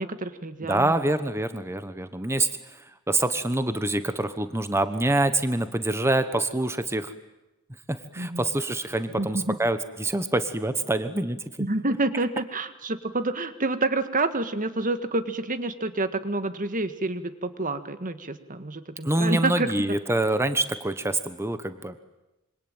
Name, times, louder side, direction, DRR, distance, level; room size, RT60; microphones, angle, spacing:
voice 1, 0.0-0.9 8.2-8.5 9.2-9.6 11.6-19.7, right 2 dB, 40° right, 10 dB, 1.7 m, -28 dB
voice 2, 0.7-7.1 7.9-11.7 19.0-22.0, right 2 dB, 10° right, 10 dB, 1.2 m, -26 dB
26.5 x 25.0 x 9.0 m, 0.98 s
head